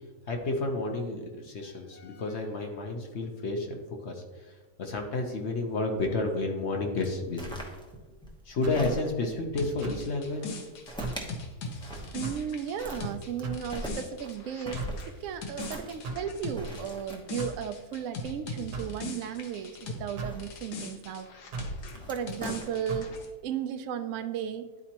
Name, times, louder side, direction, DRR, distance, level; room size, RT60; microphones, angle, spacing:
voice 1, 0.3-4.5 4.8-7.6 8.5-10.5 21.9-22.1, left 2 dB, 55° left, 3 dB, 0.9 m, -31 dB
sound 1, 7.0-9.4 10.3-11.3 11.6-12.5 12.8-18.9 20.0-20.8 21.6-23.2, right 1 dB, 5° left, 0.4 m, -42 dB
sound 2, 8.6-8.9 9.8-10.1 11.0-11.3 12.2-12.5 13.4-13.7 14.8-15.0 16.0-16.3 17.4-17.6 18.7-19.0 20.2-20.4 21.5-21.8 22.9-23.1, right 4 dB, 85° right, 1.4 m, -37 dB
sound 3, 9.6-20.1 20.4-23.3, left 3 dB, 80° left, 1.5 m, -40 dB
voice 2, 12.1-21.3 22.1-24.7, right 8 dB, 70° right, 9 dB, 0.8 m, -35 dB
11.0 x 4.2 x 2.9 m, 1.3 s
omnidirectional pair, 1.7 m